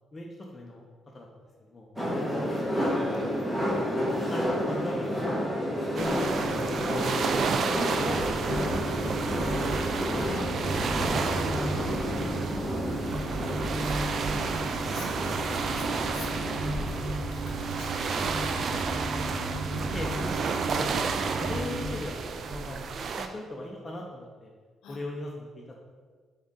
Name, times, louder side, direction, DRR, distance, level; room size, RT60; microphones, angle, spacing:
voice 1, 0.1-0.9 1.1-1.3 1.6-1.9 2.3-3.0 3.8-5.5 5.9-7.1 7.5-9.6 9.9-10.7 11.2-14.0 17.1-17.3 19.5-20.9 21.3-24.5 24.9-25.6, left 1 dB, 25° left, -2 dB, 0.6 m, -40 dB
sound 1, 2.0-16.9, equal, 10° right, 1.4 m, -31 dB
sound 2, 5.9-23.3, right 5 dB, 60° right, 0.3 m, -32 dB
sound 3, 8.0-21.9, right 1 dB, 80° right, 1.4 m, -34 dB
voice 2, 14.9-17.0 17.3-18.4 19.7-20.0 24.8-25.0, left 4 dB, 90° left, 1 dB, 0.7 m, -48 dB
3.8 x 3.6 x 3.8 m, 1.5 s
cardioid pair, 90°, 0 cm